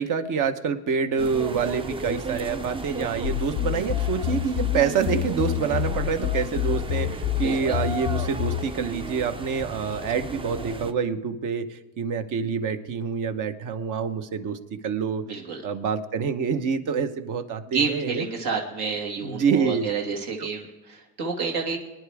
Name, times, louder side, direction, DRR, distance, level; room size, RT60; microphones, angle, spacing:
voice 1, 0.0-15.3 15.6-18.3 19.2-19.9 20.4-20.5, right 6 dB, 50° right, 9 dB, 1.2 m, -27 dB
sound 1, 1.2-10.9, right 3 dB, 15° right, 0.5 m, -34 dB
sound 2, 3.2-8.7, left 17 dB, 50° left, 0.5 m, -27 dB
voice 2, 7.4-7.8 15.3-15.6 17.7-21.8, right 5 dB, 70° right, 0 dB, 2.2 m, -29 dB
24.0 x 10.0 x 3.5 m, 1.2 s
cardioid pair, 120°, 39 cm